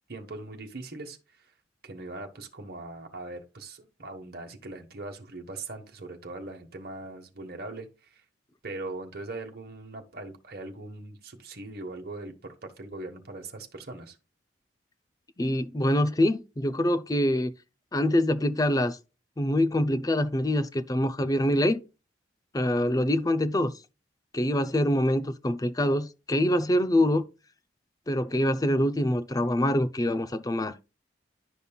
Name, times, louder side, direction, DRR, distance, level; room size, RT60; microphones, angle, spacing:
voice 1, 0.1-1.2 1.8-8.2 8.6-14.2, right 2 dB, 55° right, 1.3 m, -40 dB
voice 2, 15.4-17.5 17.9-19.0 19.4-21.8 22.5-23.7 24.3-27.2 28.1-30.7, left 1 dB, 20° left, 0.5 m, -25 dB
11.0 x 5.3 x 2.3 m
head